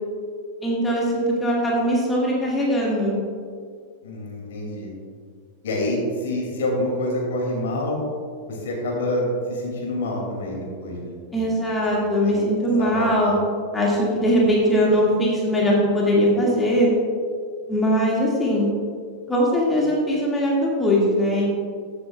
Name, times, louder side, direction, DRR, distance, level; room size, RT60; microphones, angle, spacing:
voice 1, 0.6-3.2 11.3-13.3 13.7-16.9 17.7-18.7 19.3-21.5, equal, 10° left, -4 dB, 2.0 m, -20 dB
voice 2, 4.0-4.9 5.6-8.0 8.5-11.5 12.2-12.4 12.8-13.4, left 1 dB, 60° left, -1 dB, 2.5 m, -27 dB
14.0 x 8.2 x 2.3 m, 2.1 s
figure-of-eight pair, 90°, 0 cm